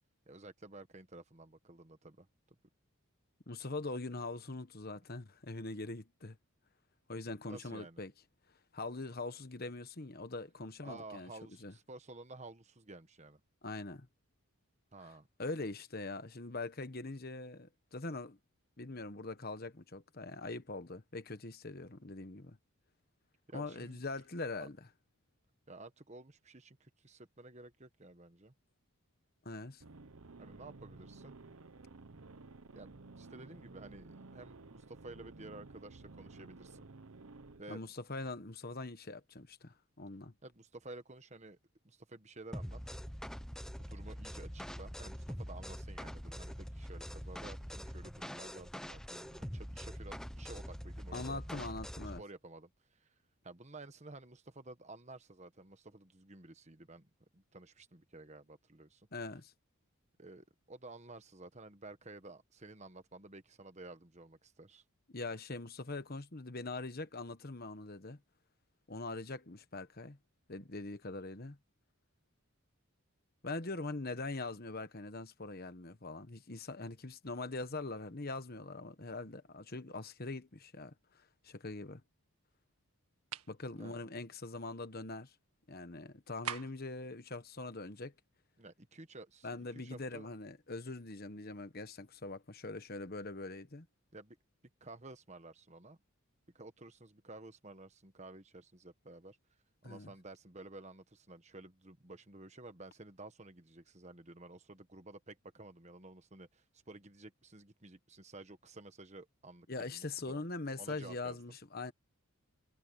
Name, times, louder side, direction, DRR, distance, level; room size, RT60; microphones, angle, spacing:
voice 1, 0.3-2.3 7.5-8.0 10.8-13.4 14.9-15.3 23.5-24.0 24.6-24.7 25.7-28.5 30.4-31.3 32.7-36.9 37.6-37.8 40.4-41.6 41.8-42.9 43.9-51.4 52.2-53.1 53.4-59.1 60.2-64.8 83.8-84.0 88.6-90.3 94.1-94.4 94.8-96.0 96.5-99.4 99.8-110.4 110.8-111.6, right 2 dB, 30° right, 1.3 m, -52 dB
voice 2, 3.5-6.4 7.1-8.1 8.7-11.3 11.6-11.7 13.6-14.1 15.4-18.4 18.8-22.6 23.5-24.9 29.4-29.8 37.7-40.3 51.1-52.2 59.1-59.5 65.1-68.2 68.9-70.2 70.5-71.6 73.4-82.0 83.5-85.3 85.7-88.1 89.4-93.9 99.8-100.1 109.7-111.9, left 3 dB, 45° left, 1.3 m, -42 dB
sound 1, 29.8-37.6, right 3 dB, 70° right, 0.9 m, -54 dB
sound 2, 42.5-52.2, equal, 5° left, 0.9 m, -44 dB
sound 3, 83.2-83.6 86.4-86.9, right 8 dB, 90° right, 2.0 m, -41 dB
head